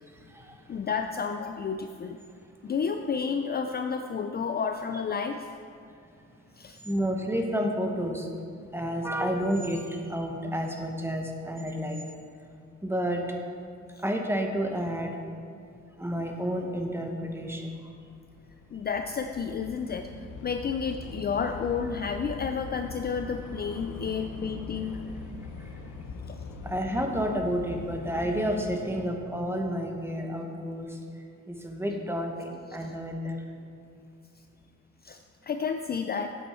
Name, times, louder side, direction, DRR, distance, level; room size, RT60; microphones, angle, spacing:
voice 1, 0.7-2.2 2.6-5.5 6.6-6.8 18.7-20.1 20.4-25.0 26.3-26.4 35.0-36.4, left 6 dB, 35° left, 6 dB, 0.4 m, -31 dB
voice 2, 6.8-8.3 8.7-12.0 12.8-13.3 14.0-15.2 16.0-17.7 26.6-31.0 31.5-33.4, equal, 10° right, 2 dB, 1.2 m, -30 dB
Train / Subway metro underground, 15.8-16.0 16.3-28.8, left 4 dB, 75° left, 1.0 m, -42 dB
8.7 x 8.5 x 4.4 m, 2.5 s
cardioid pair, 90°, 30 cm